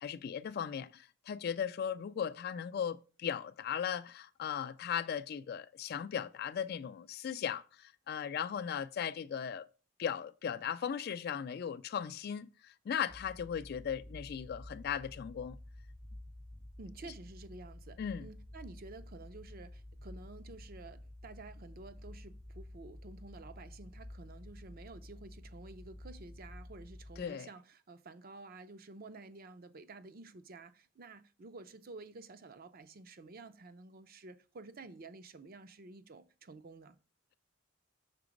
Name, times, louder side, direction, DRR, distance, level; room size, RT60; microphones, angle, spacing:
voice 1, 0.0-9.7 10.0-15.6 18.0-18.3 27.2-27.5, left 8 dB, 50° left, 0.3 m, -37 dB
sound 1, 13.1-27.2, left 1 dB, ahead, 0.5 m, -51 dB
voice 2, 16.8-37.0, right 3 dB, 45° right, 0.5 m, -51 dB
6.0 x 3.8 x 5.1 m
head